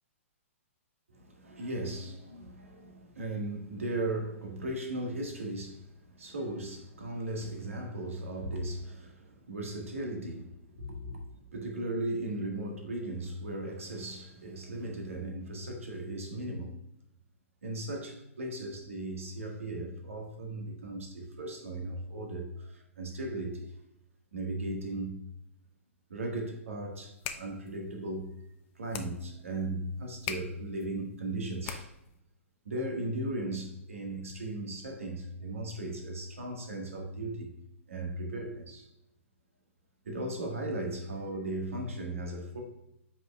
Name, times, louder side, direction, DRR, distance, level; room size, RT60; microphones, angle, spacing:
voice 1, 1.1-11.2 11.5-16.7 17.6-23.7 24.3-25.3 26.1-28.4 28.7-31.9 32.6-37.5 37.9-38.9 40.0-42.6, right 1 dB, 75° right, 1.6 m, -37 dB
sound 1, 27.0-32.2, left 8 dB, 30° left, 0.6 m, -44 dB
7.8 x 5.9 x 2.3 m
figure-of-eight pair, 115°, 7 cm